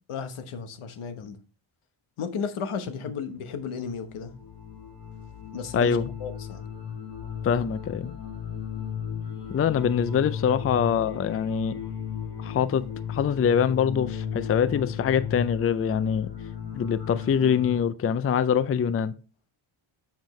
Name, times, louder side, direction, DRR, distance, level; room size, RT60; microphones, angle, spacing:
voice 1, 0.1-1.4 2.2-4.3 5.5-6.7, left 6 dB, 85° left, 1.1 m, -34 dB
sound 1, 3.7-17.8, left 8 dB, 55° left, 2.9 m, -35 dB
voice 2, 5.7-6.1 7.4-8.1 9.5-11.7 12.4-16.3 16.7-19.1, left 7 dB, 30° left, 0.4 m, -24 dB
7.4 x 7.2 x 3.1 m
cardioid pair, 100°, 48 cm